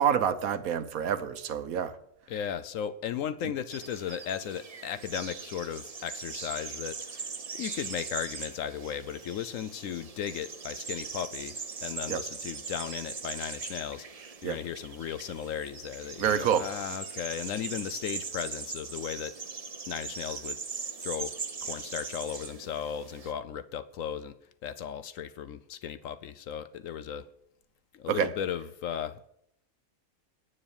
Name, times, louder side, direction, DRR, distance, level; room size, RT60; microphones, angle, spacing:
voice 1, 0.0-1.9 12.1-12.2 14.4-14.6 16.2-16.7 28.1-28.3, right 8 dB, 70° right, 11 dB, 1.2 m, -27 dB
voice 2, 2.3-14.1 14.4-19.4 19.9-20.6 21.0-24.3 24.6-27.3 27.9-29.2, left 9 dB, 70° left, 14 dB, 0.9 m, -36 dB
sound 1, 3.7-23.3, right 5 dB, 40° right, 0.6 m, -40 dB
9.8 x 8.7 x 7.1 m, 0.73 s
omnidirectional pair, 1.6 m